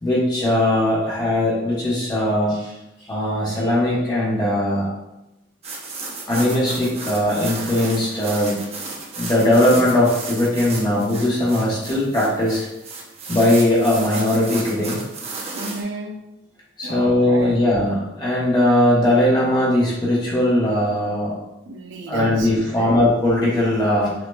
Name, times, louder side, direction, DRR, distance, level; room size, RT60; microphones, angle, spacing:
voice 1, 0.0-2.7 3.1-4.9 6.3-8.6 9.2-12.6 13.3-15.0 16.8-21.4 22.1-24.1, left 1 dB, 20° left, -7 dB, 1.0 m, -19 dB
sound 1, 5.6-15.8, right 3 dB, 35° right, 0.7 m, -34 dB
voice 2, 15.5-16.2 16.8-17.6 21.7-23.1, right 1 dB, 75° right, 3 dB, 0.6 m, -31 dB
6.3 x 2.8 x 2.2 m, 0.93 s
head